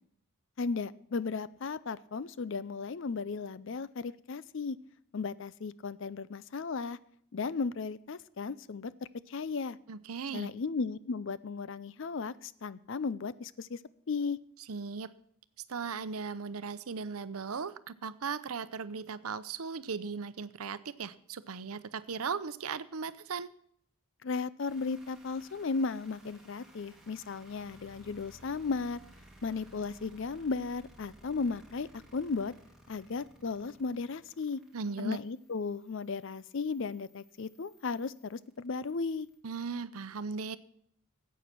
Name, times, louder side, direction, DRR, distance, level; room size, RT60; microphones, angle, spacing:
voice 1, 0.6-4.8 5.1-7.0 7.3-8.9 9.3-9.8 10.3-13.8 14.1-14.4 24.2-29.0 29.4-32.5 32.9-34.6 35.0-39.3, left 4 dB, 55° left, 18 dB, 0.5 m, -35 dB
voice 2, 9.9-10.5 14.7-15.1 15.7-23.5 34.7-35.2 39.4-40.6, right 5 dB, 80° right, 15 dB, 0.7 m, -37 dB
sound 1, 24.7-39.4, right 1 dB, ahead, 2.2 m, -59 dB
14.5 x 8.6 x 6.0 m, 0.67 s
head